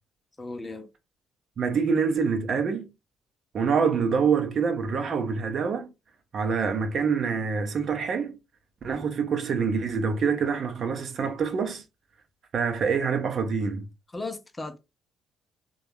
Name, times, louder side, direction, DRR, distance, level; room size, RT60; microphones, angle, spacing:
voice 1, 0.4-0.9 14.1-14.8, left 2 dB, 20° left, 0.6 m, -36 dB
voice 2, 1.6-2.9 3.5-5.9 6.3-8.3 8.8-11.8 12.5-13.9, right 5 dB, 45° right, 0.6 m, -26 dB
3.4 x 2.3 x 3.1 m
figure-of-eight pair, 45°, 0 cm